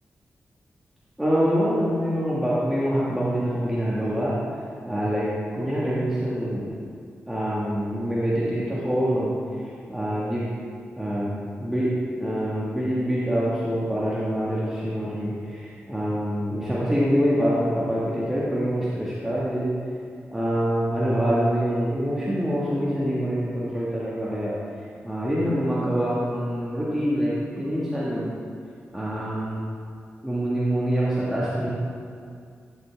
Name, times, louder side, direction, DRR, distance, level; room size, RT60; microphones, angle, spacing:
voice 1, 1.2-6.7 7.3-9.6 9.9-10.5 11.0-11.3 11.6-11.9 12.2-19.7 20.3-24.5 25.0-28.3 28.9-29.6 30.2-31.7, equal, 5° right, -9 dB, 1.6 m, -25 dB
12.5 x 6.9 x 3.4 m, 2.2 s
wide cardioid pair, 85°, 5 cm